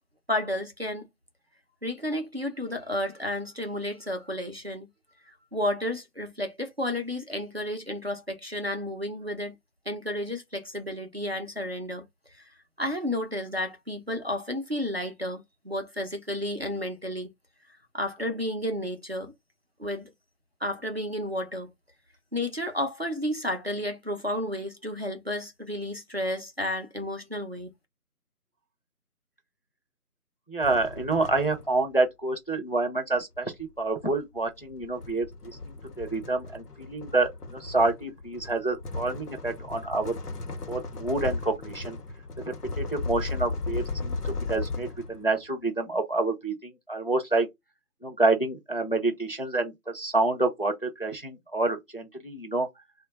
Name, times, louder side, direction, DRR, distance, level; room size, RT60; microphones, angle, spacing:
voice 1, 0.3-1.1 1.8-4.9 5.3-9.6 9.9-12.0 12.4-12.5 12.8-17.3 17.9-19.3 19.8-20.1 20.6-21.7 22.3-27.7, left 1 dB, 45° right, 0.5 m, -32 dB
voice 2, 30.5-40.1 40.7-42.0 42.5-47.5 48.0-52.7, right 2 dB, 40° left, 0.5 m, -28 dB
sound 1, 30.6-31.9 33.1-45.4, left 3 dB, 80° left, 0.9 m, -36 dB
2.6 x 2.2 x 3.8 m
figure-of-eight pair, 170°, 46 cm